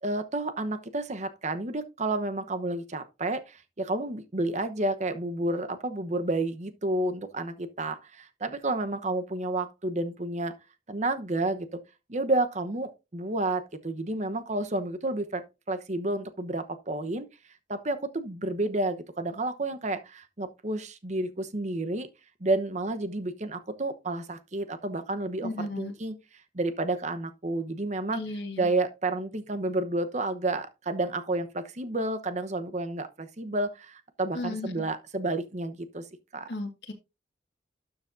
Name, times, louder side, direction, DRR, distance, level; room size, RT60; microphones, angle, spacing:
voice 1, 0.0-10.6 10.9-11.8 12.1-17.3 17.7-22.1 22.4-26.1 26.5-28.2 28.6-36.0 36.3-36.5, right 2 dB, 40° right, 1.0 m, -30 dB
voice 2, 25.4-25.9 28.1-28.7 34.3-34.9 36.5-36.9, left 2 dB, 75° left, 1.6 m, -34 dB
12.5 x 7.0 x 2.6 m
head